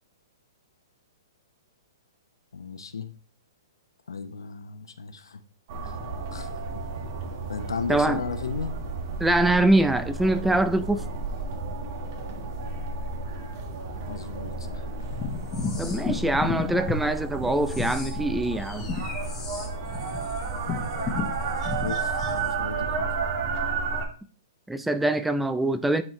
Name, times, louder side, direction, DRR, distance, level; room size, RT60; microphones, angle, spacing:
voice 1, 2.5-3.1 4.1-5.4 5.8-6.0 6.3-6.5 7.5-8.7 14.1-14.8 21.0-21.1 21.4-23.1, left 5 dB, 90° left, 0.9 m, -35 dB
sound 1, 5.7-24.1, right 4 dB, 45° right, 1.6 m, -32 dB
voice 2, 7.9-8.2 9.2-11.0 15.8-18.9 24.7-26.0, right 1 dB, 5° right, 0.4 m, -23 dB
sound 2, 15.1-17.0 17.3-22.5, left 5 dB, 15° left, 1.3 m, -33 dB
9.6 x 4.5 x 3.3 m
hypercardioid pair, 140°, 2 cm